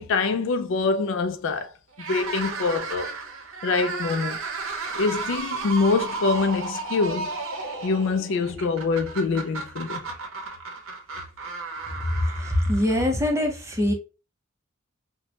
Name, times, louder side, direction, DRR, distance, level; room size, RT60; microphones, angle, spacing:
voice 1, 0.0-1.7 2.1-3.1 3.6-4.4 4.9-7.3 7.8-10.1, left 4 dB, 65° left, 0.4 m, -25 dB
sound 1, 1.9-13.2, right 4 dB, 75° right, 0.7 m, -33 dB
voice 2, 12.4-13.9, left 1 dB, 15° right, 0.6 m, -23 dB
3.0 x 2.2 x 2.7 m
head